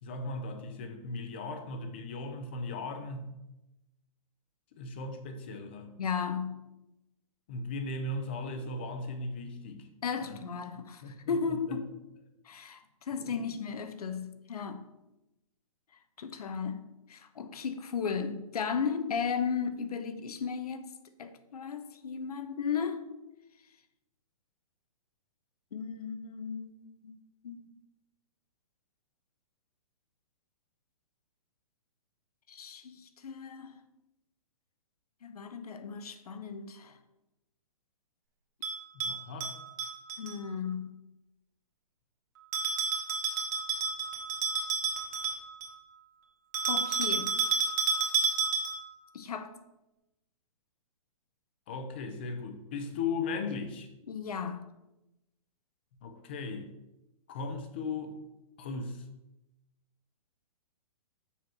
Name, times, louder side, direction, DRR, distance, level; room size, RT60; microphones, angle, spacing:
voice 1, 0.0-3.4 4.7-5.9 7.5-9.9 10.2-10.4 11.0-11.8 13.2-13.4 38.9-39.5 51.7-53.9 56.0-56.7 57.3-58.2 58.6-59.0, left 3 dB, 20° left, 0.5 m, -37 dB
voice 2, 6.0-6.6 10.0-11.9 12.4-14.8 16.2-20.9 21.2-23.1 25.7-27.2 27.4-27.7 32.5-33.8 35.2-37.0 40.2-40.9 46.7-47.4 49.1-49.5 54.1-54.7, left 6 dB, 90° left, 0.9 m, -35 dB
Bell, 38.6-40.3 42.5-45.8 46.5-48.9, right 5 dB, 30° right, 1.4 m, -31 dB
6.9 x 4.5 x 6.1 m
hypercardioid pair, 180°, 19 cm